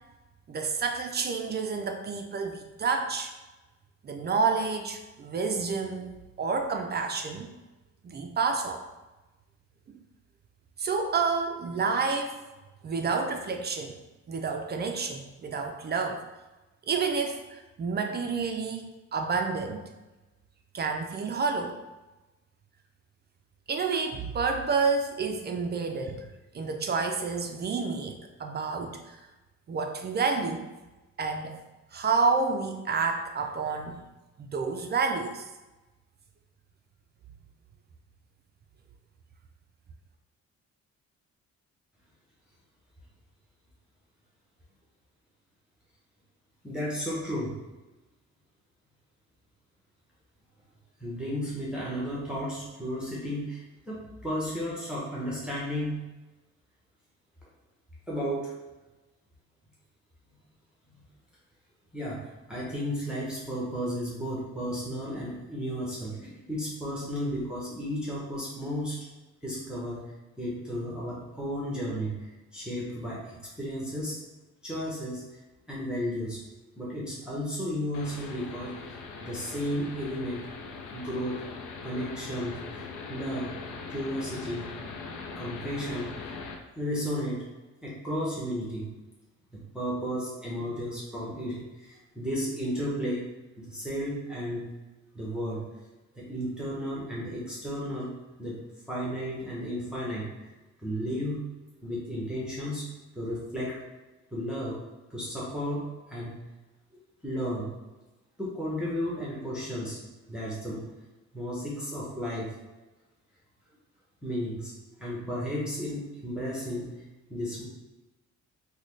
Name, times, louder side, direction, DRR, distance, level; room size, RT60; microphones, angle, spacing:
voice 1, 0.5-3.3 4.0-7.5 8.0-8.8 10.8-12.4 12.8-14.0 14.3-16.2 16.9-19.8 20.7-21.8 23.7-26.3 26.5-29.2 29.7-30.7 31.2-31.6 31.9-34.0 34.4-35.5, right 4 dB, 35° right, 4 dB, 0.4 m, -29 dB
voice 2, 46.6-47.6 51.0-56.0 58.1-58.6 61.9-69.0 69.4-70.1 70.4-74.2 74.6-75.2 75.7-76.4 76.8-80.5 80.9-81.4 81.8-82.6 83.1-83.6 83.9-84.7 85.4-86.1 86.7-87.5 87.8-88.9 89.5-93.3 93.6-94.7 95.1-95.6 96.2-98.1 98.4-98.6 98.9-100.5 100.8-101.4 101.8-102.9 103.1-103.8 104.3-104.8 105.1-106.4 107.2-107.7 108.4-110.0 110.3-110.9 111.3-112.5 114.2-114.7 115.0-116.9 117.3-117.6, equal, 5° right, -7 dB, 0.9 m, -33 dB
sound 1, 77.9-86.5, left 4 dB, 80° left, 0.6 m, -41 dB
3.8 x 2.2 x 3.2 m, 1.1 s
cardioid pair, 90°, 30 cm